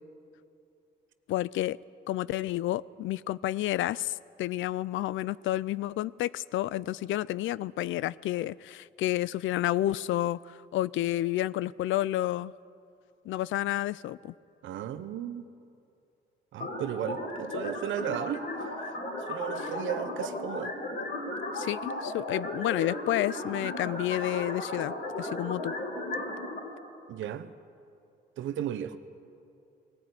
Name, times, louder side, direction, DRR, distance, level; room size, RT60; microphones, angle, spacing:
voice 1, 1.3-1.8 2.1-12.5 13.3-14.3 19.6-19.7 21.5-25.7, left 14 dB, 75° left, 0.4 m, -30 dB
voice 2, 14.6-15.4 16.5-18.7 19.3-20.7 27.1-27.5 28.4-29.0, right 10 dB, 80° right, 1.0 m, -35 dB
sound 1, 16.6-26.6, left 1 dB, 60° left, 4.9 m, -35 dB
19.5 x 14.5 x 9.6 m
cardioid pair, 90°, 20 cm